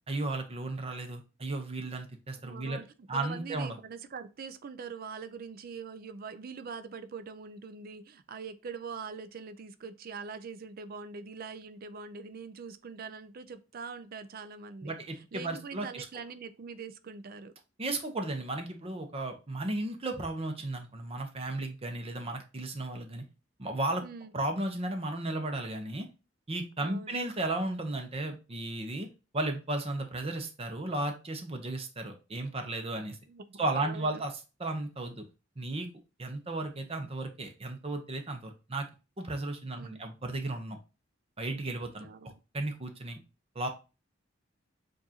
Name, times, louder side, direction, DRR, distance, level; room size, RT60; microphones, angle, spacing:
voice 1, 0.1-2.8 3.1-3.8 14.8-16.1 17.8-23.2 23.6-24.0 24.3-26.1 26.5-29.1 29.3-33.2 33.6-34.3 34.6-35.2 35.6-35.9 36.2-38.9 39.2-40.8 41.4-42.1 42.5-43.2 43.5-43.7, right 2 dB, 30° right, 0.8 m, -34 dB
voice 2, 2.4-2.9 3.1-17.5 24.0-24.3 26.8-27.2 33.3-34.2 39.7-40.2 42.0-42.3, right 5 dB, 50° right, 0.4 m, -43 dB
7.0 x 2.6 x 2.8 m
head